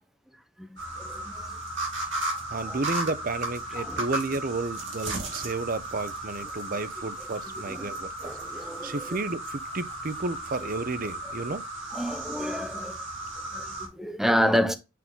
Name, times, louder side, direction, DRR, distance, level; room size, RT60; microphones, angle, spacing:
voice 1, 0.6-1.6 2.6-2.8 3.8-4.0 7.7-7.9 8.2-9.1 11.9-13.0 13.5-14.7, equal, ahead, 0.7 m, -29 dB
sound 1, 0.8-13.9, right 2 dB, 60° right, 2.8 m, -35 dB
voice 2, 2.5-8.3 8.8-11.7, right 3 dB, 40° right, 0.6 m, -32 dB
8.4 x 3.8 x 3.6 m
head